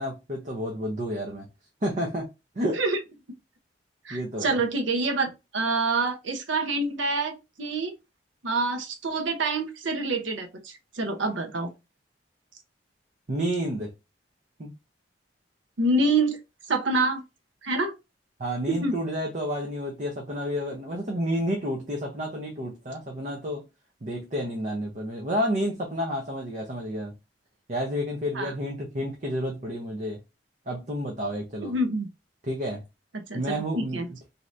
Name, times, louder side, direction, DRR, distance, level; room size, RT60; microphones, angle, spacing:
voice 1, 0.0-1.5 1.8-2.3 2.6-2.8 4.1-4.6 13.3-13.9 14.6-14.7 18.4-23.6 24.0-27.1 27.7-30.2 30.7-31.7 32.4-32.8 33.3-34.1, equal, 40° right, 0.6 m, -30 dB
voice 2, 4.0-7.9 8.4-11.7 15.8-16.4 16.7-17.2 17.6-17.9 18.7-19.0 28.3-28.5 31.6-32.1 33.1-34.1, right 2 dB, 85° right, 0.7 m, -27 dB
2.7 x 2.5 x 3.2 m
head